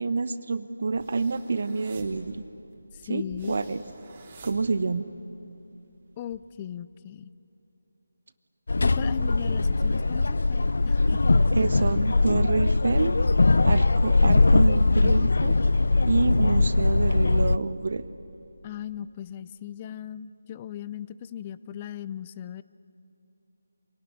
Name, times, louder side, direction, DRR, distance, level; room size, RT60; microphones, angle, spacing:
voice 1, 0.0-2.4 3.1-3.8 4.4-5.1 11.5-13.2 13.6-15.6 16.1-18.0, right 4 dB, 50° right, 13 dB, 0.9 m, -27 dB
sound 1, 0.8-5.3 5.7-6.3, right 2 dB, 30° right, 3.6 m, -48 dB
voice 2, 2.9-3.6 6.2-7.3 8.8-11.2 18.6-22.6, left 10 dB, 20° left, 16 dB, 0.5 m, -38 dB
sound 2, 8.7-17.6, left 3 dB, 65° left, 0.6 m, -21 dB
26.5 x 18.5 x 9.9 m, 2.9 s
figure-of-eight pair, 160°, 0 cm